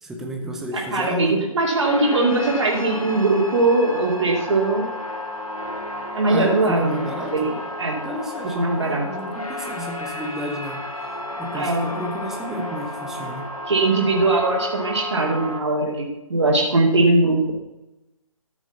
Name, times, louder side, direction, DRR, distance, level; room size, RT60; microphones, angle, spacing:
voice 1, 0.0-1.4 6.3-7.5 7.9-10.9 11.4-13.5, equal, ahead, 2 dB, 0.6 m, -31 dB
voice 2, 0.7-4.9 6.1-7.5 7.8-8.0 8.5-9.1 11.5-11.9 13.7-17.5, right 2 dB, 55° right, -4 dB, 2.6 m, -20 dB
sound 1, 1.8-15.6, left 1 dB, 85° left, 2.6 m, -32 dB
13.0 x 6.2 x 7.0 m, 0.99 s
figure-of-eight pair, 150°, 18 cm